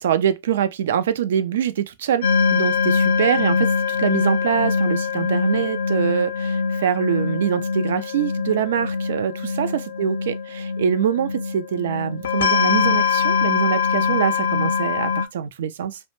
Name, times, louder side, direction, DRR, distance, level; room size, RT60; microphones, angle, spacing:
voice 1, 0.0-16.0, right 9 dB, 80° right, 0.3 m, -24 dB
sound 1, 2.2-15.3, left 5 dB, 90° left, 0.4 m, -23 dB
2.1 x 2.0 x 2.9 m
supercardioid pair, 140°, 0 cm